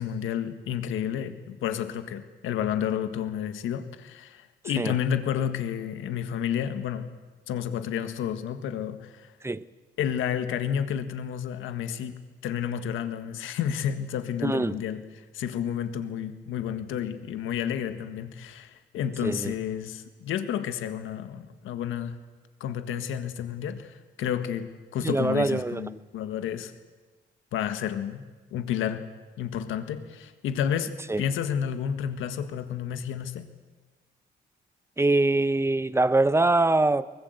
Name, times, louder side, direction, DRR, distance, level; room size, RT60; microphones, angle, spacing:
voice 1, 0.0-7.1 7.5-9.3 10.0-12.1 12.4-15.0 15.3-22.2 22.6-26.7 27.5-28.2 28.5-29.1 29.4-33.4, left 9 dB, 85° left, 1.6 m, -31 dB
voice 2, 14.4-14.8 19.2-19.5 25.0-25.9 31.1-31.2 35.0-37.1, right 2 dB, 15° right, 0.9 m, -23 dB
23.0 x 20.0 x 8.1 m
cardioid pair, 90°, 20 cm